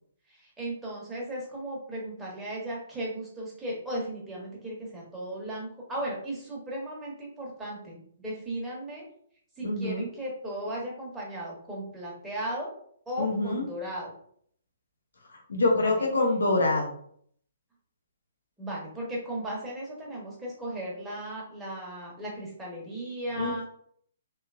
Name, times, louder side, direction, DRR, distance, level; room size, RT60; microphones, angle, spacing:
voice 1, 0.3-9.0 9.6-12.7 13.1-14.1 15.7-15.9 18.6-23.7, right 1 dB, 10° right, -4 dB, 1.1 m, -36 dB
voice 2, 9.6-10.1 13.2-13.7 15.3-16.9 23.4-23.7, left 2 dB, 70° left, 1 dB, 0.9 m, -26 dB
3.1 x 2.7 x 2.4 m, 0.63 s
figure-of-eight pair, 130°, 0 cm